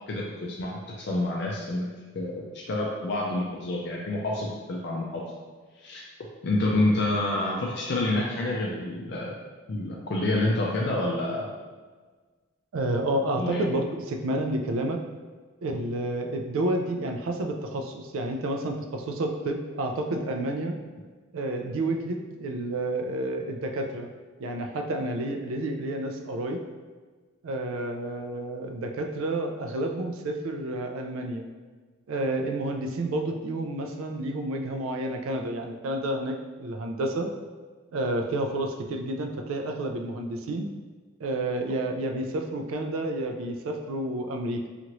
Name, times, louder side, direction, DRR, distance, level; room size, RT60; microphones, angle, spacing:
voice 1, 0.1-1.9 2.1-5.2 5.8-6.0 6.4-9.3 9.7-11.5 13.3-13.7, left 2 dB, 55° left, -3 dB, 0.4 m, -28 dB
voice 2, 12.7-15.0 15.6-20.8 21.3-24.1 24.4-26.6 27.4-31.5 32.1-37.3 37.9-40.7 41.2-44.7, right 1 dB, 85° right, 4 dB, 0.4 m, -30 dB
2.9 x 2.4 x 2.9 m, 1.4 s
head